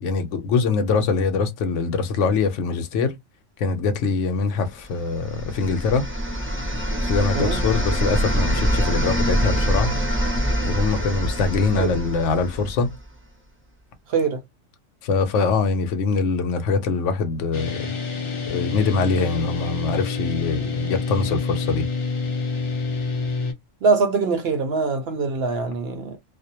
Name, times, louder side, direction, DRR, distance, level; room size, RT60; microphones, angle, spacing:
voice 1, 0.0-3.1 3.6-6.1 7.0-9.9 10.6-12.9 15.0-17.9 18.5-21.9, left 4 dB, 75° left, 0.9 m, -23 dB
sound 1, 5.0-13.0, equal, 15° right, 0.4 m, -24 dB
sound 2, 17.5-23.5, left 4 dB, 55° left, 0.3 m, -27 dB
voice 2, 23.8-26.2, right 4 dB, 65° right, 0.7 m, -23 dB
2.4 x 2.0 x 2.8 m
omnidirectional pair, 1.3 m